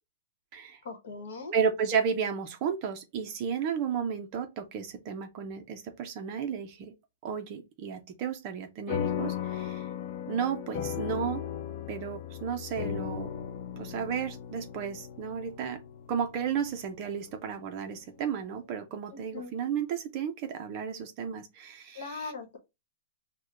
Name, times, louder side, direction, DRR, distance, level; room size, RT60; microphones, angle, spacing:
voice 1, 0.8-1.5 19.1-19.5 21.9-22.6, left 4 dB, 55° left, 1.2 m, -40 dB
voice 2, 1.5-6.9 7.2-9.9 10.3-11.4 11.9-13.3 13.8-15.8 16.1-22.3, right 7 dB, 25° right, 0.5 m, -33 dB
sound 1, 8.9-17.6, left 9 dB, 30° left, 0.3 m, -36 dB
6.1 x 2.1 x 2.4 m
hypercardioid pair, 180°, 0 cm